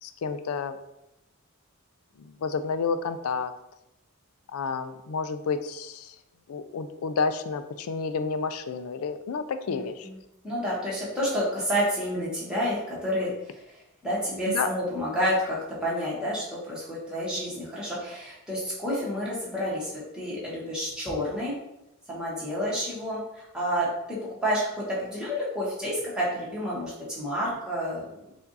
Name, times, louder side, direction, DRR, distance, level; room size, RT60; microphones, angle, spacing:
voice 1, 0.0-0.8 2.2-3.5 4.5-6.1 6.5-10.1 14.5-14.7, left 5 dB, 75° left, 10 dB, 0.4 m, -30 dB
voice 2, 9.7-10.2 10.4-13.6 14.0-21.5 22.1-28.0, equal, 5° right, -7 dB, 1.3 m, -29 dB
4.6 x 2.5 x 3.9 m, 0.88 s
head